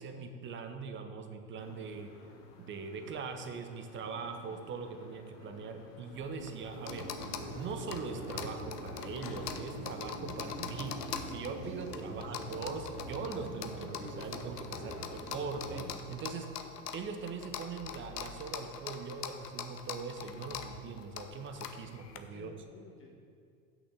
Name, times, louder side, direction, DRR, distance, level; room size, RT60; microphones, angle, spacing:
voice 1, 0.0-2.1 2.6-7.1 7.5-14.9 15.3-16.5 16.9-22.5, right 5 dB, 25° right, 6 dB, 0.7 m, -41 dB
sound 1, 1.6-9.4, left 5 dB, 60° left, 1.3 m, -54 dB
sound 2, 6.1-22.2, left 8 dB, 85° left, 0.7 m, -44 dB
sound 3, 6.7-15.9, right 1 dB, 40° right, 1.9 m, -44 dB
voice 2, 11.8-12.7 14.6-15.3 22.3-23.2, left 2 dB, 25° left, -2 dB, 2.1 m, -54 dB
6.2 x 6.1 x 6.3 m, 2.3 s
hypercardioid pair, 90°, 47 cm